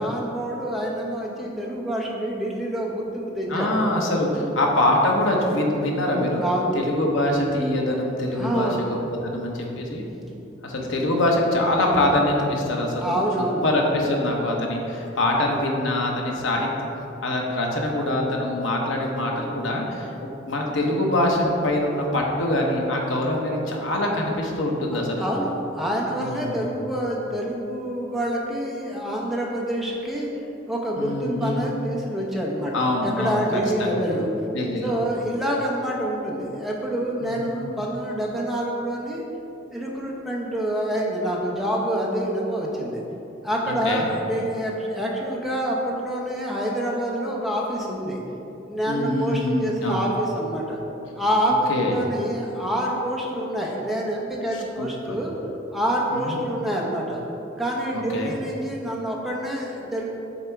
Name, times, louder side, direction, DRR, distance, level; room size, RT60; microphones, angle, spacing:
voice 1, 0.0-3.8 4.3-4.5 6.4-6.8 8.4-8.9 13.0-13.7 24.9-34.3 34.8-39.2 39.7-43.0 43.4-48.2 48.7-50.8 51.2-55.3 55.7-57.2 57.6-60.0, right 1 dB, ahead, -3 dB, 0.7 m, -27 dB
voice 2, 3.5-6.4 6.7-9.0 9.2-10.1 10.6-13.2 13.6-16.7 17.2-20.1 20.5-25.2 26.2-26.6 31.0-31.7 32.7-33.4 33.8-34.0 34.5-34.9 37.2-37.7 43.8-44.1 48.9-50.1 51.7-51.9 54.8-55.1 56.1-56.4 57.9-58.3, left 1 dB, 85° left, 0 dB, 0.9 m, -24 dB
6.8 x 3.6 x 4.6 m, 2.9 s
head